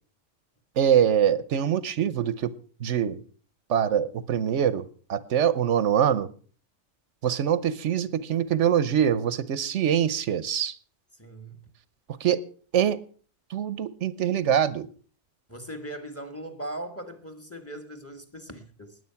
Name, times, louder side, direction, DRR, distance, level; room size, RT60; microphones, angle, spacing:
voice 1, 0.8-2.5 2.8-3.2 3.7-6.3 7.2-10.7 12.2-12.4 12.7-13.0 13.5-14.9, right 9 dB, 85° right, 1.1 m, -24 dB
voice 2, 11.2-11.6 15.5-19.0, right 1 dB, 10° left, 1.5 m, -39 dB
19.5 x 8.1 x 5.8 m
omnidirectional pair, 1.2 m